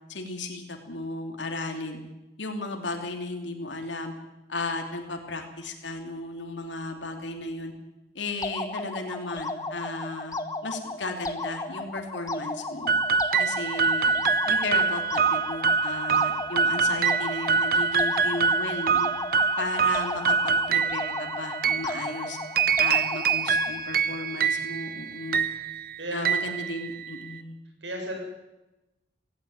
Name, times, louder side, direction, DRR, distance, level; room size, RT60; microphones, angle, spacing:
voice 1, 0.1-2.0 2.4-4.1 4.5-7.7 8.1-10.4 10.6-13.0 13.4-14.1 14.5-19.1 19.6-22.4 22.8-25.5 26.1-27.6, left 2 dB, 90° left, 4 dB, 3.1 m, -34 dB
sound 1, 8.4-23.8, left 2 dB, 20° left, 1.3 m, -35 dB
sound 2, 12.9-27.3, right 5 dB, 55° right, 0.9 m, -25 dB
voice 2, 26.0-26.3 27.8-28.2, equal, 85° right, 2 dB, 7.3 m, -33 dB
18.0 x 17.0 x 8.9 m, 1.0 s
head